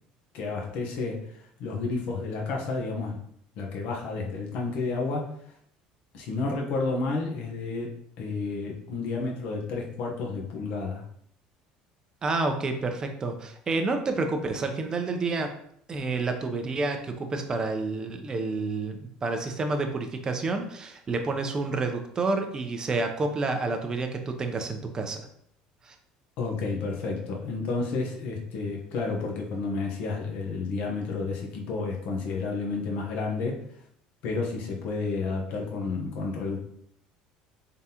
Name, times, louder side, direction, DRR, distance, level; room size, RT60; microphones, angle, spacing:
voice 1, 0.3-3.2 3.6-5.3 6.1-11.0 26.4-33.6 34.2-36.6, left 3 dB, 65° left, 0 dB, 1.0 m, -31 dB
voice 2, 12.2-15.5 15.9-25.3 25.8-26.0, right 3 dB, 25° right, 5 dB, 0.6 m, -29 dB
3.8 x 3.6 x 2.9 m, 0.69 s
cardioid pair, 125°, 3 cm